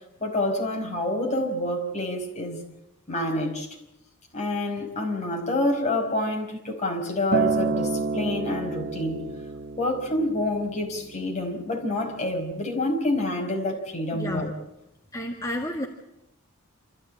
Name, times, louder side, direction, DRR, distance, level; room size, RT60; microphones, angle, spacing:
voice 1, 0.2-2.6 3.1-3.7 4.3-9.2 9.8-14.5, left 1 dB, 35° left, 5.1 m, -27 dB
Acoustic guitar, 7.3-11.6 12.4-12.5, right 4 dB, 50° right, 0.8 m, -29 dB
voice 2, 14.1-14.4 15.1-15.9, left 1 dB, 15° left, 2.0 m, -30 dB
27.5 x 14.0 x 8.7 m
head